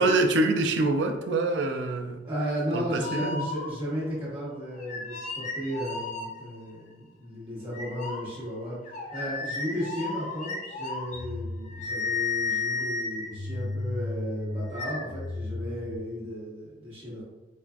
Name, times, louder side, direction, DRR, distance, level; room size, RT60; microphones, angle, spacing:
voice 1, 0.0-2.2 2.7-3.5, right 2 dB, 75° right, 5 dB, 0.4 m, -25 dB
voice 2, 2.2-8.8 9.1-17.2, equal, 30° right, -9 dB, 1.1 m, -34 dB
sound 1, 3.0-4.0 4.8-6.7 7.7-16.0, left 3 dB, 45° left, 0.5 m, -33 dB
4.3 x 2.4 x 2.3 m, 1.1 s
head